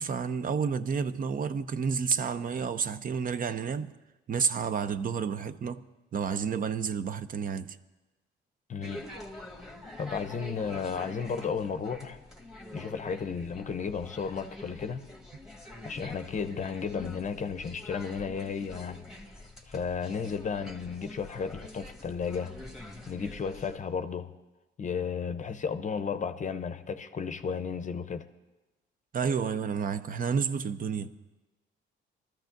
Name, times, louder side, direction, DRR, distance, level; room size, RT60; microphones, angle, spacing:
voice 1, 0.0-3.9 4.3-5.9 6.1-7.8 29.1-31.2, right 6 dB, 45° right, 0.6 m, -30 dB
voice 2, 8.7-9.1 10.0-12.2 12.7-15.1 15.8-19.2 19.7-22.6 23.1-24.4 24.8-28.3, left 6 dB, 40° left, 0.6 m, -33 dB
sound 1, 8.8-23.8, left 1 dB, ahead, 1.6 m, -46 dB
22.5 x 13.5 x 2.6 m
cardioid pair, 90°, 20 cm